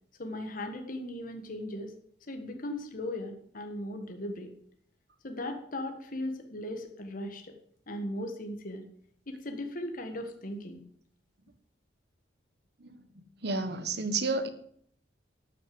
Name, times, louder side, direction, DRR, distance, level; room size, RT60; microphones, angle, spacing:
voice 1, 0.2-1.9 2.3-4.5 5.2-7.5 7.9-8.8 9.3-10.8, left 1 dB, 50° left, 5 dB, 1.6 m, -37 dB
voice 2, 12.8-14.5, right 3 dB, 65° right, 9 dB, 1.4 m, -32 dB
13.0 x 6.6 x 7.7 m, 0.64 s
head